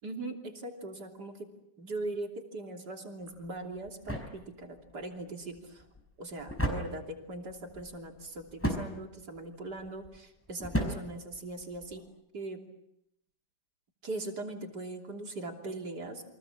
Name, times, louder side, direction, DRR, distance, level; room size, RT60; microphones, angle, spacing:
voice 1, 0.0-1.5 1.8-5.8 6.2-12.0 12.3-12.6 14.0-16.3, right 2 dB, 65° right, 3 dB, 3.7 m, -40 dB
sound 1, 3.2-12.1, equal, 5° left, 5.1 m, -38 dB
29.0 x 24.5 x 7.3 m, 0.81 s
omnidirectional pair, 1.9 m